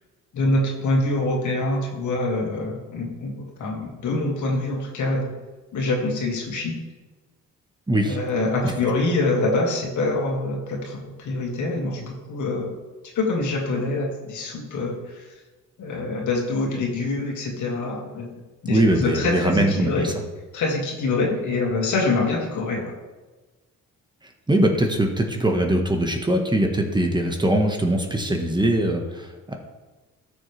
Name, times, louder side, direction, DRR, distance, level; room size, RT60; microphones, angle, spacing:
voice 1, 0.3-5.3 5.7-6.7 8.0-12.7 13.1-15.2 15.8-18.3 18.6-20.1 20.5-22.9, left 2 dB, 75° left, 0 dB, 2.3 m, -25 dB
voice 2, 7.9-8.2 18.7-20.1 24.5-29.5, right 1 dB, 15° right, 2 dB, 1.4 m, -21 dB
13.5 x 6.8 x 3.3 m, 1.2 s
cardioid pair, 90°, 30 cm